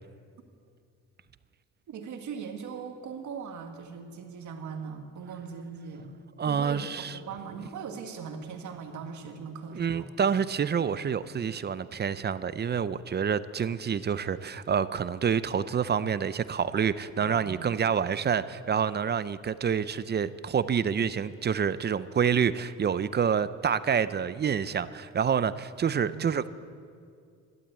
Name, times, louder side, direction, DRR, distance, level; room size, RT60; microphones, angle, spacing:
voice 1, 1.9-6.1 6.5-10.1 17.2-18.3 26.0-26.5, right 6 dB, 70° right, 4 dB, 1.8 m, -40 dB
voice 2, 6.4-7.2 9.7-26.5, right 7 dB, 35° right, 15 dB, 0.6 m, -27 dB
12.5 x 11.5 x 8.4 m, 2.3 s
cardioid pair, 90°, 30 cm